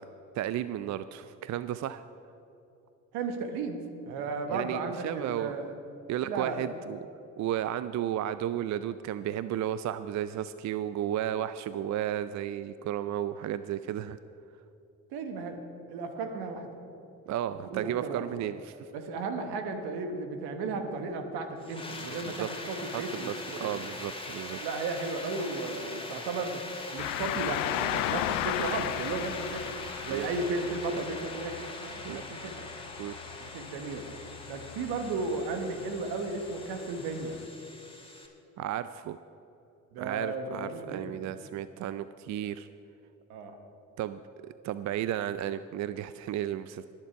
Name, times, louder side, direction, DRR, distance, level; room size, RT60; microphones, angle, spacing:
voice 1, 0.3-2.0 4.5-5.5 6.1-7.0 7.4-14.2 17.3-18.9 22.2-22.5 22.9-24.6 30.1-30.3 32.0-32.2 33.0-33.1 38.6-39.2 40.0-42.7 44.0-46.9, right 11 dB, 45° right, 14 dB, 0.5 m, -33 dB
voice 2, 3.1-5.7 6.2-6.7 15.1-15.6 15.9-16.7 17.7-18.2 18.9-23.8 24.6-26.6 26.9-29.7 30.0-32.6 33.4-34.0 34.5-37.4 39.9-41.3 43.3-43.6, right 3 dB, 75° right, 6 dB, 1.6 m, -34 dB
sound 1, 21.6-38.3, left 2 dB, 15° left, 2.4 m, -42 dB
sound 2, 27.0-37.5, left 16 dB, 80° left, 0.5 m, -37 dB
21.5 x 7.5 x 4.6 m, 2.9 s
hypercardioid pair, 60°, 39 cm